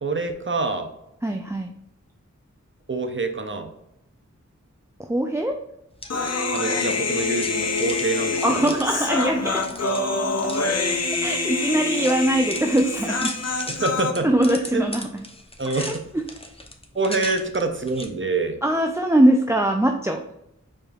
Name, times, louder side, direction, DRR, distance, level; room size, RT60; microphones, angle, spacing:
voice 1, 0.0-0.9 2.9-3.7 6.5-8.8 13.7-14.3 14.7-14.8 15.6-16.0 17.0-18.6, right 3 dB, 40° right, 6 dB, 0.7 m, -26 dB
voice 2, 1.2-1.7 5.1-5.5 8.4-9.6 11.2-13.3 14.2-15.1 15.7-15.9 17.2-17.3 18.6-20.3, right 1 dB, 10° right, 3 dB, 0.4 m, -21 dB
sound 1, 5.9-18.1, left 1 dB, 20° left, 0.8 m, -39 dB
Human voice, 6.1-14.1, left 3 dB, 55° left, 0.7 m, -26 dB
4.9 x 4.4 x 2.4 m, 0.82 s
wide cardioid pair, 45°, 30 cm